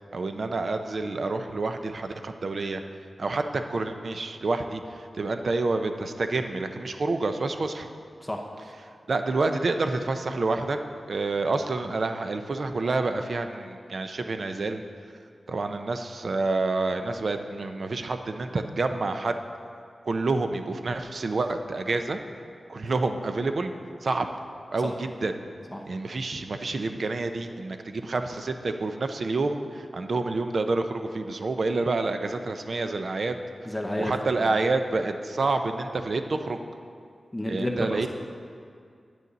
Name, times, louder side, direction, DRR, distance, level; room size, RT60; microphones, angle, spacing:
voice 1, 0.1-2.8 3.2-7.9 9.1-10.8 11.1-14.8 15.5-19.4 20.0-22.2 22.7-23.7 24.0-24.3 24.7-25.3 25.9-33.4 34.0-36.6 37.5-38.1, right 3 dB, 60° right, 7 dB, 0.5 m, -28 dB
voice 2, 33.7-34.1 34.4-34.5 37.3-38.1, left 1 dB, 10° left, 1 dB, 0.8 m, -30 dB
9.9 x 9.2 x 4.0 m, 2.2 s
wide cardioid pair, 105°, 0 cm